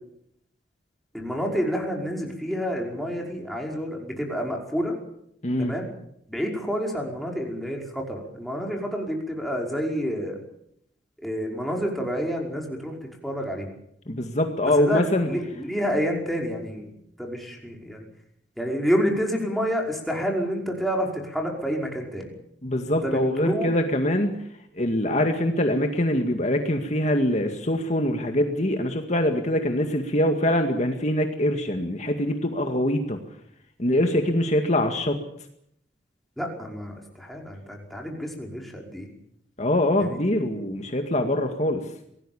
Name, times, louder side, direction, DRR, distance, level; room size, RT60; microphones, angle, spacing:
voice 1, 1.1-5.0 5.6-5.9 6.3-10.4 11.2-13.0 13.2-13.7 14.7-18.1 18.6-22.3 22.8-23.7 36.4-39.1, equal, ahead, 0 dB, 5.3 m, -29 dB
voice 2, 5.4-5.8 14.1-15.3 22.6-24.4 24.8-33.2 33.8-35.2 39.6-41.8, left 1 dB, 40° left, 5 dB, 2.0 m, -23 dB
25.5 x 18.5 x 7.2 m, 0.72 s
head